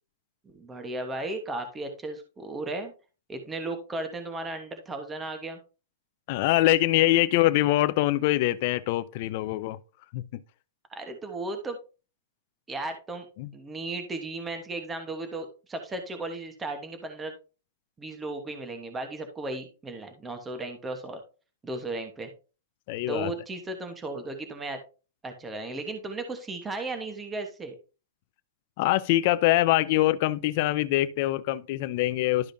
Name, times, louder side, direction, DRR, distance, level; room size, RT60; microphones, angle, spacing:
voice 1, 0.4-2.9 3.3-5.6 10.9-11.8 12.7-13.3 13.5-17.3 18.0-21.2 21.6-22.3 23.1-24.8 25.2-27.7, right 2 dB, 10° right, 1.1 m, -35 dB
voice 2, 6.3-9.8 10.1-10.4 13.4-13.5 22.9-23.3 28.8-32.5, left 16 dB, 40° left, 0.5 m, -24 dB
12.0 x 4.9 x 2.6 m
supercardioid pair, 165°, 0 cm